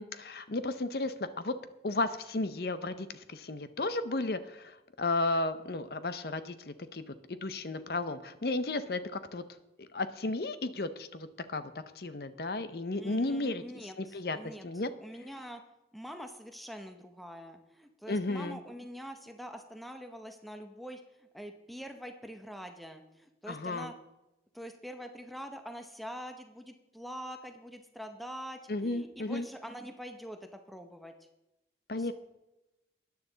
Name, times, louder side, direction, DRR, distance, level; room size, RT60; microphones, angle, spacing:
voice 1, 0.0-1.5 1.8-9.4 9.8-13.6 14.0-14.4 14.6-14.9 18.1-18.6 23.5-23.9 28.7-29.5 31.9-32.1, left 2 dB, 60° left, 12 dB, 0.7 m, -34 dB
voice 2, 12.9-14.6 15.0-15.6 15.9-23.9 24.5-31.1 32.0-32.1, equal, ahead, 6 dB, 0.7 m, -45 dB
13.0 x 9.6 x 3.9 m, 0.95 s
head